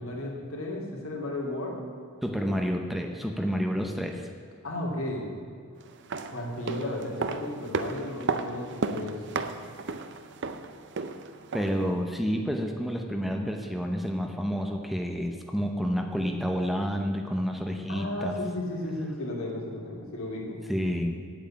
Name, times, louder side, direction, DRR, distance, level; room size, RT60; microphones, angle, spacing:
voice 1, 0.0-1.8 4.6-5.2 6.3-9.4 17.9-20.6, left 1 dB, 80° left, -2 dB, 2.8 m, -34 dB
voice 2, 2.2-4.3 11.5-18.4 20.7-21.3, equal, ahead, 3 dB, 0.8 m, -29 dB
sound 1, 5.9-11.9 12.2-12.3, right 4 dB, 55° right, 0.6 m, -34 dB
8.9 x 8.1 x 8.8 m, 2.2 s
head